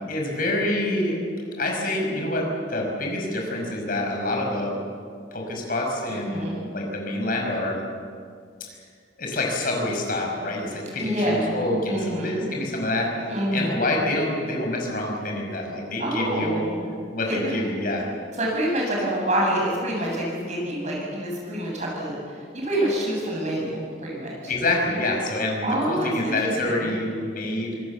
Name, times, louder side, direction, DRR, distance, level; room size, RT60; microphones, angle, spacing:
voice 1, 0.1-1.2 1.6-4.8 5.3-6.4 6.7-7.8 9.2-16.6 17.1-18.1 24.5-27.8, left 1 dB, 50° left, 0 dB, 5.6 m, -27 dB
voice 2, 6.1-6.7 11.0-11.6 11.9-12.5 13.3-13.8 16.0-16.8 17.3-17.6 18.4-22.2 22.5-24.5 25.6-26.4 26.7-26.9, right 1 dB, 40° right, -2 dB, 7.9 m, -27 dB
26.0 x 19.0 x 7.3 m, 2.2 s
head